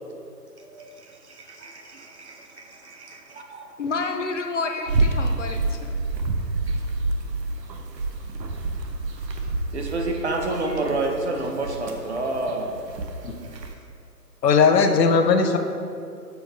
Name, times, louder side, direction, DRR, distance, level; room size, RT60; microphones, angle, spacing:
voice 1, 0.6-3.7 6.7-6.8 9.4-12.8 13.2-13.8, right 2 dB, 45° right, 2 dB, 0.6 m, -30 dB
voice 2, 3.8-5.9, left 3 dB, 50° left, 5 dB, 0.5 m, -29 dB
sound 1, 4.9-13.8, right 2 dB, 80° right, 0.8 m, -28 dB
voice 3, 14.4-15.6, left 5 dB, 75° left, 6 dB, 0.8 m, -18 dB
6.9 x 4.5 x 3.2 m, 2.4 s
hypercardioid pair, 155°, 49 cm